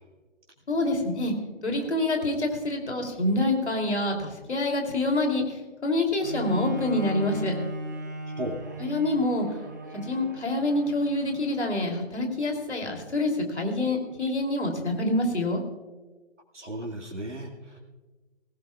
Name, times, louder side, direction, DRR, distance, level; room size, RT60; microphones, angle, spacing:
voice 1, 0.7-1.3 1.6-7.5 8.8-9.5 9.9-15.6, left 2 dB, 65° left, 3 dB, 3.1 m, -26 dB
Bowed string instrument, 6.2-11.8 12.5-12.6, right 1 dB, 15° right, 0.7 m, -37 dB
voice 2, 16.5-17.8, right 1 dB, 75° right, -1 dB, 2.2 m, -35 dB
20.0 x 16.0 x 2.4 m, 1.3 s
figure-of-eight pair, 140°, 36 cm